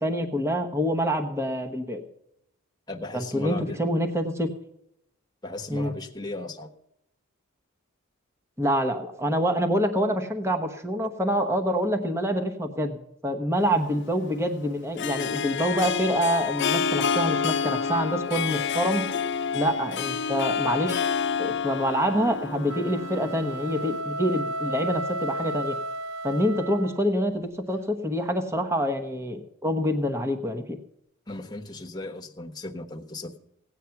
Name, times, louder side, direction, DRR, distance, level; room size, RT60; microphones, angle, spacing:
voice 1, 0.0-2.0 3.1-4.5 5.7-5.9 8.6-19.0 19.5-25.8 26.2-30.8, equal, 15° right, 5 dB, 1.1 m, -26 dB
voice 2, 2.9-3.8 5.4-6.7 31.3-33.4, left 2 dB, 20° left, 3 dB, 1.2 m, -36 dB
Harp, 13.6-24.0, left 6 dB, 55° left, 0.6 m, -29 dB
sound 1, 22.6-27.2, right 1 dB, 85° right, 0.7 m, -33 dB
17.0 x 9.2 x 5.9 m, 0.78 s
head